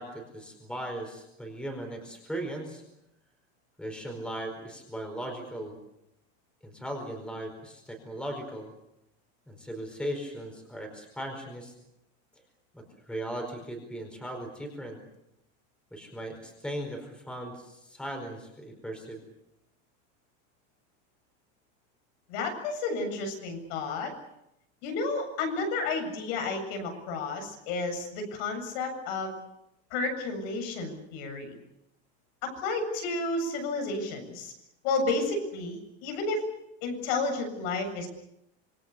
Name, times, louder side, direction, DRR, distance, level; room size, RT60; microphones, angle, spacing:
voice 1, 0.0-2.8 3.8-5.7 6.6-8.7 9.5-11.7 12.7-15.0 15.9-19.2, right 1 dB, 5° left, 3 dB, 4.7 m, -38 dB
voice 2, 22.3-24.1 24.8-29.3 29.9-31.5 32.4-34.5 34.8-36.4 36.8-38.1, left 3 dB, 60° left, 5 dB, 7.5 m, -31 dB
27.0 x 24.0 x 6.8 m, 0.84 s
cardioid pair, 175°, 33 cm